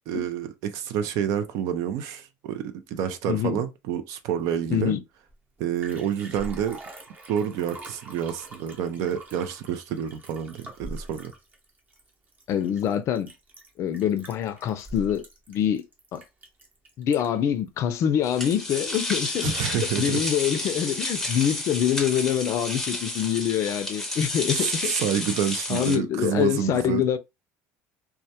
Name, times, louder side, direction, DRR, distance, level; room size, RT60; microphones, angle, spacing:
voice 1, 0.1-4.9 5.6-6.8 7.3-11.3 19.4-20.2 24.5-27.2, right 9 dB, 70° right, 0.4 m, -28 dB
voice 2, 3.3-3.6 4.7-5.0 12.5-13.3 13.8-15.8 16.1-16.2 17.0-24.9 25.7-27.2, left 9 dB, 55° left, 0.4 m, -25 dB
Liquid, 5.3-5.4 5.6-17.5 18.0-18.1, right 1 dB, 30° right, 0.8 m, -44 dB
sound 1, 18.2-26.0, left 2 dB, 5° left, 0.6 m, -31 dB
2.2 x 2.1 x 2.7 m
supercardioid pair, 105°, 6 cm